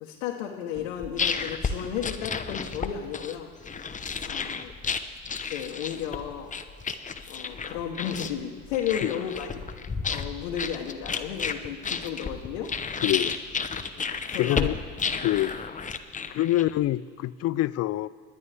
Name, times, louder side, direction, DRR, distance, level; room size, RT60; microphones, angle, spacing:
voice 1, 0.0-3.5 4.2-4.7 5.5-6.5 7.3-9.5 10.0-12.7 13.2-13.3 13.9-14.7 16.2-16.3, left 9 dB, 85° left, -1 dB, 1.1 m, -33 dB
sound 1, 0.8-16.9, left 5 dB, 20° left, 0.8 m, -32 dB
voice 2, 13.0-13.4 14.4-14.8 15.2-15.6 16.3-18.1, left 14 dB, 45° left, 18 dB, 0.5 m, -25 dB
28.5 x 9.7 x 3.4 m, 2.1 s
hypercardioid pair, 70°, 34 cm